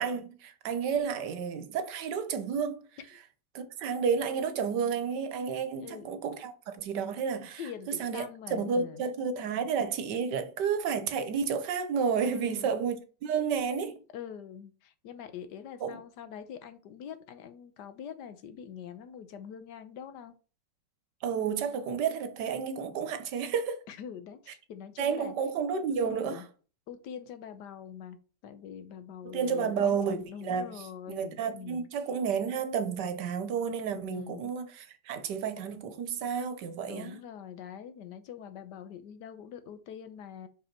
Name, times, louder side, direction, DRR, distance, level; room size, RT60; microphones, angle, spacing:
voice 1, 0.0-2.8 3.5-7.6 8.0-8.2 8.5-14.0 15.8-16.0 21.2-23.8 25.0-26.4 29.2-30.7 31.1-37.2, right 6 dB, 75° right, 1.4 m, -31 dB
voice 2, 5.7-6.1 7.6-9.0 12.3-12.8 14.1-20.3 23.9-25.3 26.0-26.5 26.9-28.2 28.4-30.0 30.3-31.9 34.1-34.5 36.9-40.5, left 8 dB, 75° left, 1.4 m, -44 dB
5.4 x 5.2 x 4.5 m
omnidirectional pair, 1.9 m